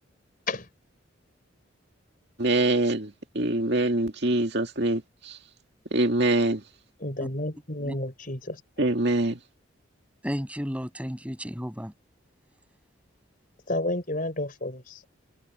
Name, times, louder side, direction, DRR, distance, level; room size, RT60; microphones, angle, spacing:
voice 1, 2.4-5.4 5.9-6.6 8.8-9.4, right 2 dB, 55° right, 2.2 m, -24 dB
voice 2, 7.0-8.6 13.7-14.8, left 1 dB, 45° left, 4.7 m, -30 dB
voice 3, 10.2-11.9, equal, 5° right, 7.8 m, -33 dB
open air
head